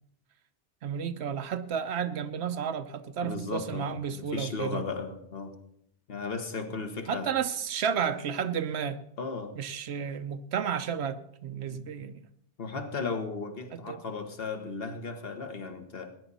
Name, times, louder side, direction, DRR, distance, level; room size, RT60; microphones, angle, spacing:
voice 1, 0.8-4.8 7.1-9.0 9.6-12.3 13.7-14.0, right 7 dB, 75° right, 12 dB, 1.0 m, -32 dB
voice 2, 3.2-5.6 6.1-7.3 9.2-9.5 11.7-11.9 12.6-16.1, left 4 dB, 60° left, 7 dB, 1.5 m, -36 dB
19.0 x 10.0 x 4.1 m, 0.72 s
omnidirectional pair, 1.1 m